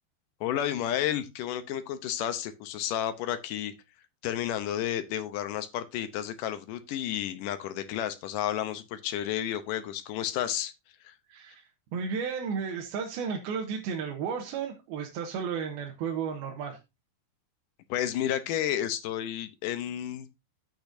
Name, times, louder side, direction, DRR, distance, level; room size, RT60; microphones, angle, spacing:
voice 1, 0.4-3.7 4.2-10.7 11.0-11.1 17.9-20.3, left 11 dB, 75° left, 2.1 m, -31 dB
voice 2, 11.3-11.6 11.9-16.8, right 6 dB, 80° right, 3.0 m, -33 dB
10.5 x 8.7 x 2.7 m
omnidirectional pair, 4.4 m